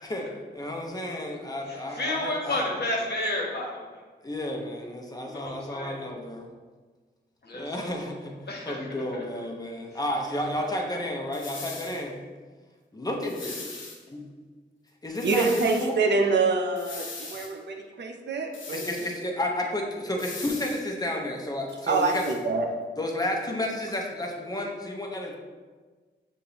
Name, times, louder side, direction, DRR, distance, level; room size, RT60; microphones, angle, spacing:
voice 1, 0.0-2.7 4.2-6.5 7.5-12.2 12.9-13.6 15.0-16.0 18.7-22.2 23.0-25.4, left 1 dB, 20° left, 0 dB, 0.9 m, -32 dB
voice 2, 2.0-3.7 5.2-6.0 7.4-7.6 8.5-8.8, left 1 dB, 60° left, -2 dB, 1.3 m, -30 dB
sound 1, 11.3-12.0 13.2-14.0 15.2-15.9 16.8-17.5 18.5-19.2 20.2-20.9 21.7-22.4, left 3 dB, 80° left, 0.8 m, -40 dB
voice 3, 15.2-18.8 21.9-22.7, right 4 dB, 65° right, 3 dB, 0.6 m, -26 dB
6.6 x 2.6 x 2.9 m, 1.4 s
cardioid pair, 60°, 20 cm